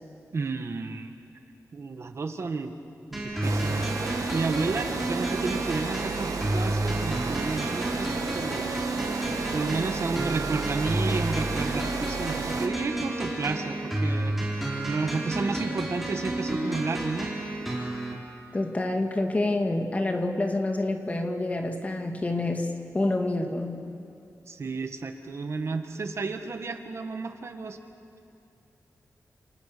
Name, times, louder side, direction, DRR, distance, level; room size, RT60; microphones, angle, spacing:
voice 1, 0.3-1.1 1.7-2.7 3.1-8.8 9.5-14.6 14.8-17.3 24.5-27.8, right 4 dB, 50° right, 6 dB, 1.6 m, -32 dB
sound 1, 3.1-18.1, right 1 dB, ahead, 4.6 m, -31 dB
Water, 3.4-12.7, right 4 dB, 75° right, 1.9 m, -33 dB
voice 2, 18.5-22.7 22.9-23.8, left 2 dB, 25° left, 3 dB, 2.2 m, -27 dB
29.5 x 28.5 x 6.9 m, 2.6 s
wide cardioid pair, 170°, 6 cm